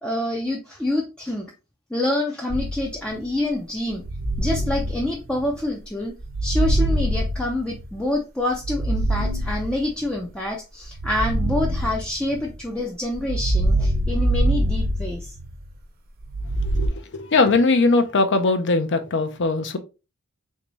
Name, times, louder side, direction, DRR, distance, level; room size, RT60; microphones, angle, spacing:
voice 1, 0.0-1.5 1.9-4.0 4.4-6.1 6.4-15.3, left 1 dB, 5° left, 0.4 m, -27 dB
sound 1, 2.5-3.2 4.0-5.6 6.2-8.0 8.5-10.1 10.9-12.6 13.2-15.7 16.3-16.9, right 1 dB, 45° right, 0.7 m, -24 dB
voice 2, 16.6-19.8, left 3 dB, 55° left, 0.6 m, -20 dB
3.4 x 2.7 x 3.0 m
head